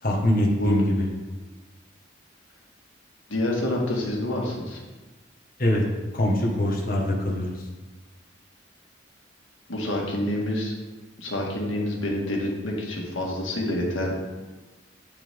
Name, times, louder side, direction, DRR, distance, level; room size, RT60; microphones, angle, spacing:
voice 1, 0.0-1.1 5.6-5.8 6.1-7.7, left 1 dB, 45° left, -2 dB, 1.6 m, -23 dB
voice 2, 3.3-4.8 9.7-10.7 11.2-14.1, left 1 dB, 85° left, -2 dB, 1.8 m, -27 dB
8.4 x 7.1 x 3.7 m, 1.2 s
head